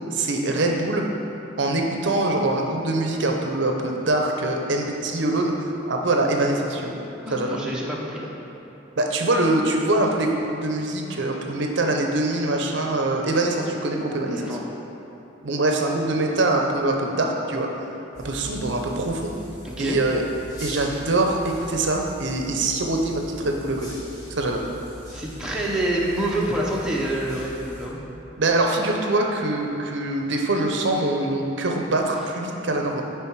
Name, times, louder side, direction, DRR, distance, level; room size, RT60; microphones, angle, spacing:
voice 1, 0.1-1.0 1.6-7.0 7.3-7.6 9.0-14.4 15.4-17.7 18.2-19.3 19.8-20.2 20.6-23.9 24.3-24.6 28.4-33.0, right 2 dB, 60° right, 2 dB, 0.6 m, -23 dB
voice 2, 7.2-8.3 14.3-14.6 19.6-20.0 25.1-28.0, right 1 dB, 5° right, -5 dB, 0.7 m, -27 dB
sound 1, 18.1-27.9, equal, 20° left, 1.4 m, -41 dB
6.8 x 4.7 x 4.6 m, 2.9 s
head